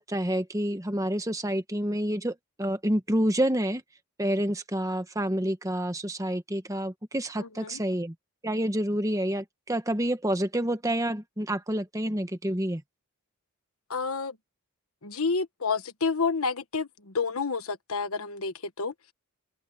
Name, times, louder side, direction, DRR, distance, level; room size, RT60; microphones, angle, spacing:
voice 1, 0.0-3.8 4.2-8.1 8.4-12.8, right 1 dB, 15° right, 1.2 m, -28 dB
voice 2, 7.4-7.8 13.9-14.4 15.0-18.9, left 4 dB, 75° left, 1.3 m, -29 dB
open air
head